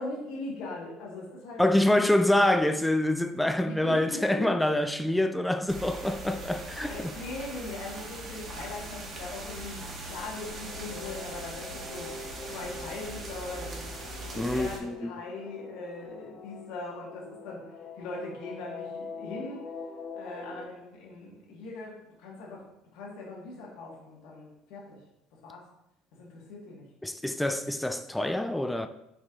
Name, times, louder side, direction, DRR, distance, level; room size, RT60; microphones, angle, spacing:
voice 1, 0.0-1.6 3.7-4.5 6.7-12.1 12.5-13.8 14.3-19.6 20.1-22.7 22.9-25.0 25.4-25.6 26.1-26.9, left 2 dB, 75° left, 1.9 m, -40 dB
voice 2, 1.6-7.1 14.4-15.1 27.0-28.9, left 1 dB, 5° left, 0.4 m, -26 dB
sound 1, 5.7-14.8, right 1 dB, 40° right, 1.6 m, -41 dB
sound 2, 10.0-20.6, left 4 dB, 60° left, 2.2 m, -44 dB
5.7 x 4.3 x 3.9 m
cardioid pair, 110°, 0 cm